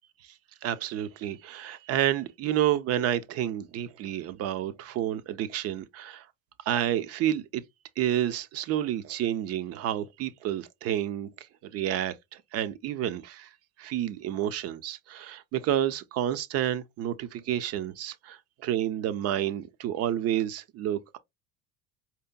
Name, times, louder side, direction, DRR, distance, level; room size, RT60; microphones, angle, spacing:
voice 1, 0.6-6.3 6.6-7.6 8.0-11.3 11.6-13.5 13.8-21.2, right 11 dB, 40° right, 0.4 m, -30 dB
4.8 x 2.8 x 2.2 m
figure-of-eight pair, 65°, 41 cm